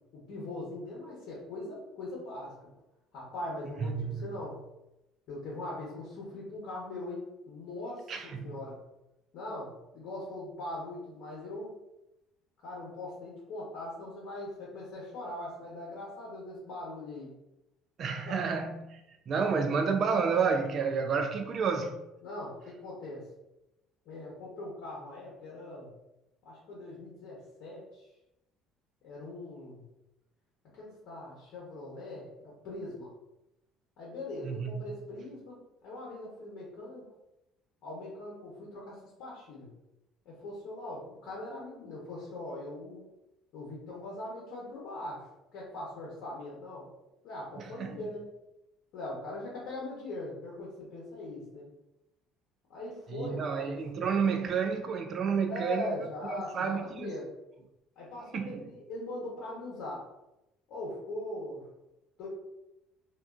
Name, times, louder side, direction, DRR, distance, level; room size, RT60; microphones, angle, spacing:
voice 1, 0.3-2.7 3.1-4.6 5.3-8.8 9.3-11.7 12.6-17.3 18.3-18.5 22.2-23.2 24.0-25.9 26.4-28.1 29.0-29.8 30.7-33.1 34.0-37.1 37.8-39.7 40.2-43.0 43.5-46.9 47.2-48.3 48.9-51.7 52.7-53.8 55.5-57.3 58.0-60.0 60.7-61.6 62.2-62.3, left 1 dB, 65° left, 0.8 m, -41 dB
voice 2, 3.8-4.3 8.1-8.5 18.0-19.0 19.3-22.0 34.4-34.7 47.8-48.0 53.1-55.9 56.3-57.1 58.3-58.6, right 5 dB, 50° right, 0.3 m, -30 dB
2.3 x 2.3 x 2.3 m
hypercardioid pair, 65°, 0 cm